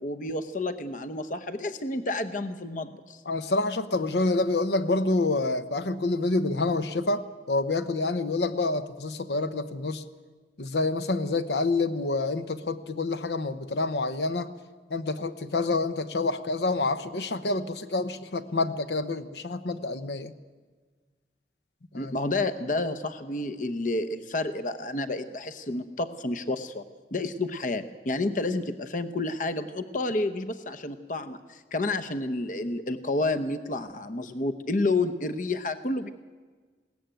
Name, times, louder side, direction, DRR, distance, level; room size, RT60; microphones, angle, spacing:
voice 1, 0.0-3.2 21.9-26.8 27.1-36.1, left 2 dB, 45° left, 11 dB, 0.9 m, -30 dB
voice 2, 3.3-10.0 10.6-14.5 14.9-20.3 21.9-22.1, left 3 dB, 70° left, 11 dB, 1.0 m, -27 dB
21.0 x 17.0 x 9.1 m, 1.4 s
head